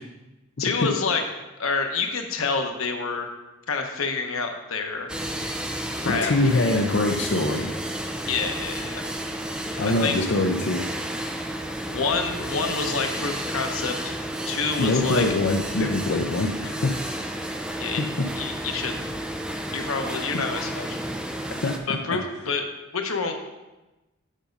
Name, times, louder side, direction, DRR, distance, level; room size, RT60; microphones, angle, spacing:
voice 1, 0.6-1.2 1.6-3.3 3.7-5.1 5.9-6.3 8.3-9.0 9.8-10.2 11.9-14.2 14.5-15.2 17.8-18.0 18.3-19.1 19.7-21.0 21.9-22.7 22.9-23.3, left 4 dB, 85° left, 4 dB, 1.0 m, -28 dB
sound 1, 5.1-21.8, right 1 dB, 5° right, 0.5 m, -32 dB
voice 2, 6.0-7.7 9.8-10.8 14.8-16.9 18.0-18.1 19.7-19.9 21.5-21.7, left 2 dB, 55° left, 2 dB, 0.6 m, -23 dB
7.4 x 5.1 x 5.2 m, 1.1 s
head